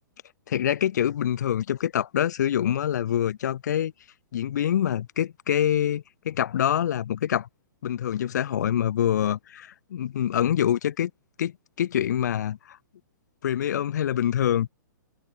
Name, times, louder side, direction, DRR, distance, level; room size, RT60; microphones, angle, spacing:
voice 1, 0.5-3.9 4.3-7.5 7.8-11.1 11.4-11.5 11.8-12.8 13.4-14.7, left 10 dB, 60° left, 2.0 m, -25 dB
figure-of-eight pair, 120°, 11 cm